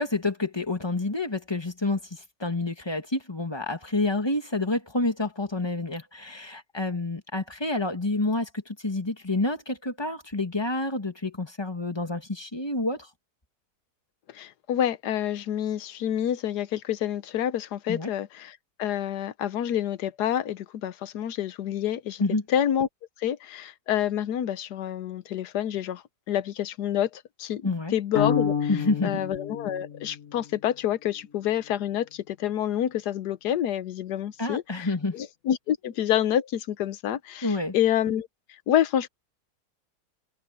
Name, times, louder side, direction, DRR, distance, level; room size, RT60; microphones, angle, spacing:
voice 1, 0.0-13.1 17.9-18.1 22.2-22.4 27.6-27.9 28.7-29.2 34.4-35.2 37.4-37.8, left 2 dB, 15° left, 1.9 m, -28 dB
voice 2, 14.3-22.2 22.5-22.9 23.2-28.7 29.0-38.3 38.7-39.1, left 10 dB, 80° left, 1.4 m, -28 dB
sound 1, 28.2-30.5, left 6 dB, 55° left, 1.7 m, -29 dB
omnidirectional pair, 1.7 m